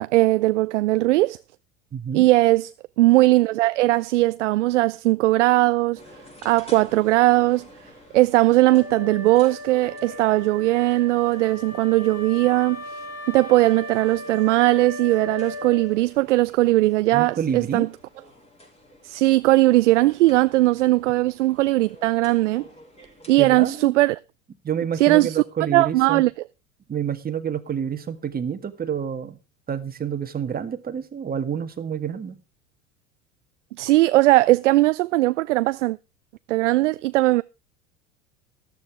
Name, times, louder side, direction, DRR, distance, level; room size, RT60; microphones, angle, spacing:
voice 1, 0.0-1.4 2.1-2.7 3.0-6.0 6.4-7.7 8.1-12.8 13.3-17.9 19.0-22.6 23.3-24.2 25.0-25.4 25.7-26.3 33.8-36.0 36.5-37.4, right 18 dB, 70° right, 0.5 m, -19 dB
voice 2, 1.9-2.2 17.1-17.9 23.4-23.9 24.6-26.2 26.9-29.4 29.7-32.4, right 8 dB, 25° right, 1.8 m, -28 dB
sound 1, 5.9-23.8, left 1 dB, 15° left, 5.7 m, -50 dB
Wind instrument woodwind instrument, 8.6-16.2, left 1 dB, 55° left, 7.8 m, -37 dB
13.5 x 12.0 x 3.5 m
figure-of-eight pair, 75°, 38 cm